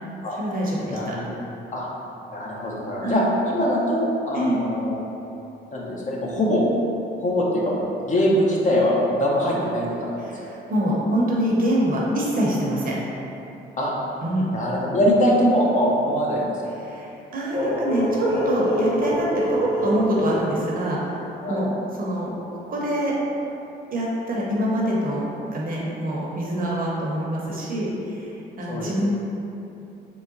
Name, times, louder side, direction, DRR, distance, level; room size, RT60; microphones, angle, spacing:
voice 1, 0.4-1.2 3.0-3.3 4.3-4.6 10.2-13.0 14.2-14.5 16.8-21.0 21.5-21.7 22.0-23.2 23.9-29.1, equal, 45° right, -4 dB, 0.8 m, -25 dB
voice 2, 0.9-1.3 1.7-1.9 2.3-5.0 5.7-6.6 7.2-10.5 13.8-13.9 14.5-16.4 16.7-16.8 21.4-21.6 28.7-28.9, equal, 40° left, -4 dB, 0.7 m, -22 dB
sound 1, 17.5-21.2, equal, 80° left, 1.1 m, -26 dB
3.9 x 2.1 x 3.8 m, 2.9 s
cardioid pair, 90°, 20 cm